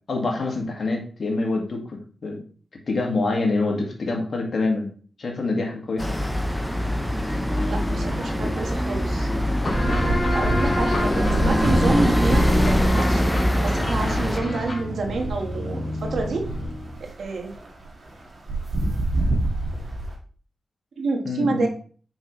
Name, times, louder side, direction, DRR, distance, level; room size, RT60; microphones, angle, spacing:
voice 1, 0.1-2.4 2.9-4.9 5.2-6.2 21.3-21.7, left 3 dB, 65° left, 1 dB, 2.0 m, -26 dB
sound 1, 6.0-14.4, equal, 5° left, 0.9 m, -23 dB
voice 2, 7.6-9.3 10.2-13.2 13.5-16.5 17.2-17.5 21.0-21.7, right 3 dB, 80° right, 3 dB, 1.4 m, -28 dB
sound 2, 8.7-8.8 9.1-20.1, right 1 dB, 55° right, 2.0 m, -28 dB
sound 3, 9.6-17.0, left 1 dB, 40° left, 2.5 m, -27 dB
6.2 x 5.4 x 3.2 m, 0.42 s
cardioid pair, 55°, 0 cm